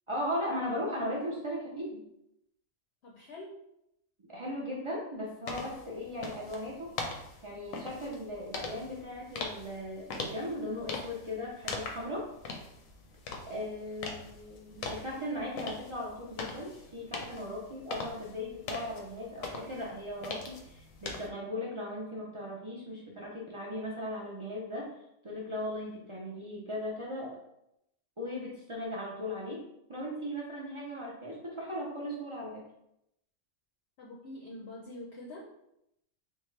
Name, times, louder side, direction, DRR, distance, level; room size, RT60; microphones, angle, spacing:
voice 1, 0.1-2.0 4.3-7.0 7.4-12.3 13.5-24.9 25.2-27.4 28.2-29.6 29.9-32.6, left 1 dB, 40° right, -5 dB, 0.4 m, -37 dB
voice 2, 3.0-3.6 34.0-35.5, left 1 dB, 65° left, -1 dB, 0.8 m, -45 dB
sound 1, 5.5-21.3, left 3 dB, 90° left, 1.0 m, -42 dB
3.6 x 2.4 x 3.1 m, 0.81 s
omnidirectional pair, 1.4 m